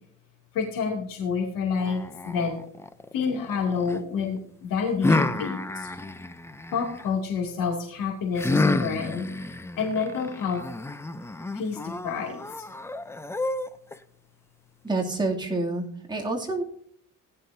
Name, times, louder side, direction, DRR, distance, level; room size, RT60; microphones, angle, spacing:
voice 1, 0.5-2.6 3.1-5.9 6.7-9.2 9.8-10.6 11.5-12.6, left 5 dB, 90° left, 1 dB, 2.7 m, -28 dB
sound 1, 1.8-4.0 5.0-7.1 8.4-14.0, left 2 dB, 10° left, 0.5 m, -30 dB
voice 2, 14.8-16.6, right 2 dB, 15° right, -2 dB, 2.7 m, -28 dB
17.5 x 11.0 x 2.7 m, 0.63 s
cardioid pair, 145°, 32 cm